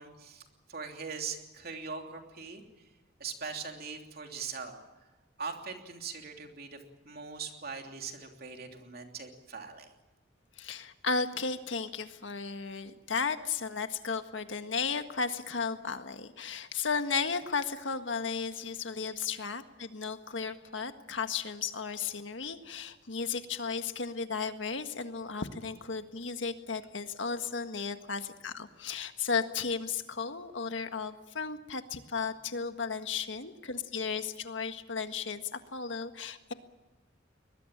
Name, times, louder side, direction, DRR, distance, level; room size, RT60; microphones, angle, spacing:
voice 1, 0.0-2.6 3.2-4.8 5.4-6.8 7.0-9.9, right 5 dB, 55° right, 3 dB, 3.1 m, -41 dB
voice 2, 10.6-36.5, left 5 dB, 85° left, 8 dB, 1.7 m, -34 dB
23.0 x 20.5 x 8.8 m, 1.1 s
head